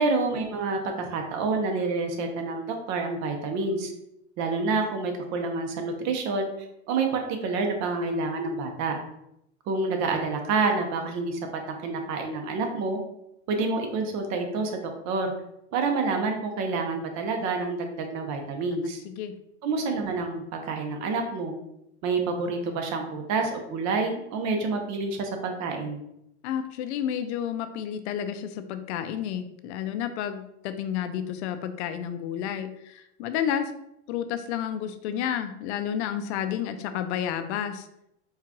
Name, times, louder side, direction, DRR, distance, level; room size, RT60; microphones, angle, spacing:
voice 1, 0.0-3.9 4.4-6.5 6.9-9.0 9.7-11.4 11.8-13.0 13.5-14.7 15.0-15.3 15.7-19.0 19.6-21.6 22.0-26.0, right 3 dB, 55° right, 4 dB, 0.9 m, -28 dB
voice 2, 19.0-19.4 26.4-33.7 34.1-37.9, left 9 dB, 75° left, 9 dB, 0.5 m, -31 dB
4.6 x 2.4 x 2.9 m, 0.81 s
hypercardioid pair, 95°, 34 cm